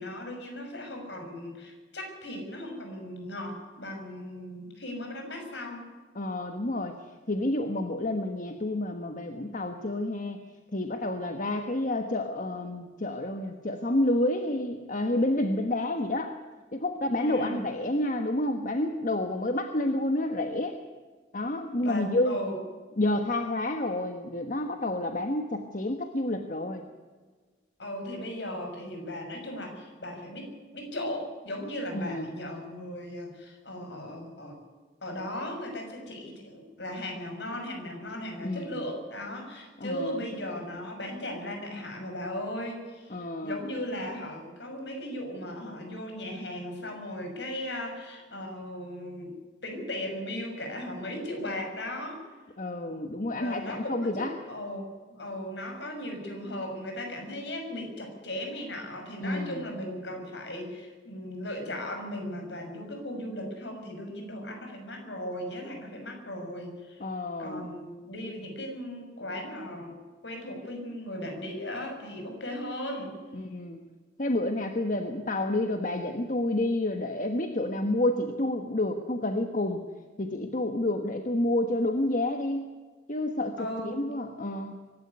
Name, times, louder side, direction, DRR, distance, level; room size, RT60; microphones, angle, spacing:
voice 1, 0.0-5.9 17.2-17.6 21.8-22.6 27.8-34.6 35.0-49.3 49.6-52.2 53.4-54.8 55.1-67.0 67.4-73.1 83.6-84.0, left 1 dB, 70° left, 3 dB, 6.3 m, -37 dB
voice 2, 6.1-6.9 7.3-10.4 10.7-16.3 16.7-20.8 21.3-22.4 23.0-26.8 31.9-32.3 38.4-38.8 39.8-40.2 43.1-43.6 52.6-54.3 59.2-59.7 67.0-67.7 73.3-73.8 74.2-79.8 80.2-82.7 83.1-84.8, left 1 dB, 45° left, 6 dB, 1.3 m, -29 dB
24.0 x 12.0 x 9.7 m, 1.4 s
head